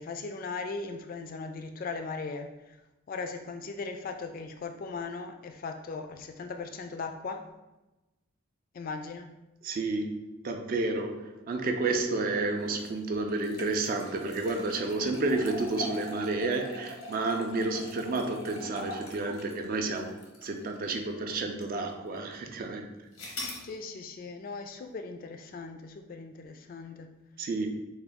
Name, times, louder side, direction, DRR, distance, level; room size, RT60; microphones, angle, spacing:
voice 1, 0.0-2.5 3.1-7.5 8.7-9.3 23.6-27.1, left 4 dB, 40° left, 6 dB, 0.3 m, -38 dB
voice 2, 9.6-22.9 27.4-27.8, right 3 dB, 45° right, 4 dB, 0.3 m, -31 dB
sound 1, 12.7-21.1 21.6-21.7 23.2-23.6, left 2 dB, 85° left, 0.8 m, -43 dB
3.5 x 2.2 x 3.4 m, 1.0 s
head